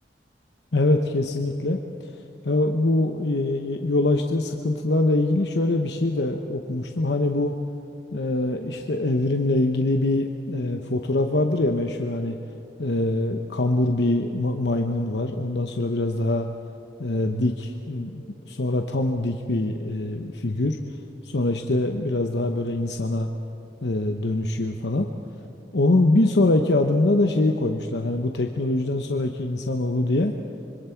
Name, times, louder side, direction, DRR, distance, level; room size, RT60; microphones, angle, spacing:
voice 1, 0.7-2.1 2.4-7.5 8.1-12.4 12.8-16.5 17.0-20.8 21.2-23.3 23.8-25.1 25.7-30.3, left 2 dB, 80° left, 4 dB, 0.9 m, -23 dB
25.0 x 25.0 x 4.6 m, 2.8 s
head